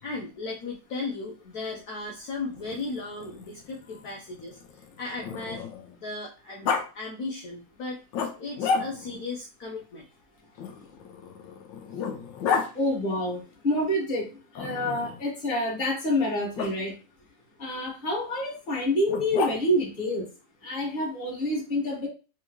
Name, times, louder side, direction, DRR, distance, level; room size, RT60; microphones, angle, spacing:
voice 1, 0.0-5.7 5.9-8.0 8.4-10.1, left 3 dB, 65° left, -1 dB, 1.1 m, -36 dB
Growling, 2.6-6.0 6.6-6.8 8.1-9.2 10.6-12.7 14.5-15.2 16.5-16.7 19.1-19.9, left 5 dB, 90° left, 1.4 m, -32 dB
voice 2, 12.7-13.4 13.6-14.3 14.5-16.9 17.6-20.2 20.6-22.1, left 1 dB, 30° left, -3 dB, 1.4 m, -27 dB
3.5 x 3.5 x 3.0 m, 0.33 s
omnidirectional pair, 1.9 m